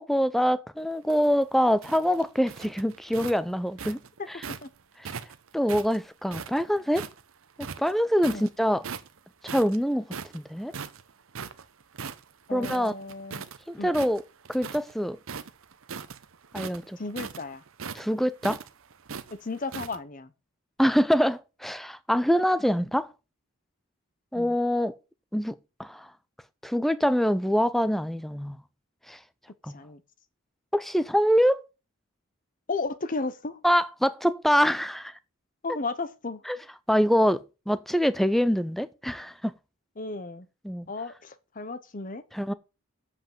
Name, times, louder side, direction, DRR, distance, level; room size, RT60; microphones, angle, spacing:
voice 1, 0.0-4.0 5.5-7.1 7.8-8.9 9.4-10.1 10.3-10.7 12.5-12.9 13.7-14.2 14.5-15.2 16.5-17.0 17.9-18.6 20.8-23.1 24.3-25.0 25.3-25.5 25.8-26.1 26.6-28.6 29.1-29.2 29.6-29.8 30.7-31.6 33.6-35.1 36.5-36.6 36.9-37.4 37.7-39.5 40.6-40.9 42.3-42.5, equal, ahead, 0.4 m, -24 dB
sound 1, 0.9-4.7 5.1-7.2 7.6-8.5 8.8-9.2 9.5-13.6 13.9-14.9 15.2-20.0, right 6 dB, 70° right, 0.8 m, -39 dB
voice 2, 12.5-13.5 13.8-13.9 17.0-17.6 19.4-20.3 24.4-24.5 29.7-30.0 32.7-33.6 35.6-36.4 40.0-40.5 40.9-42.2, left 3 dB, 35° left, 0.8 m, -34 dB
8.0 x 5.5 x 7.1 m
head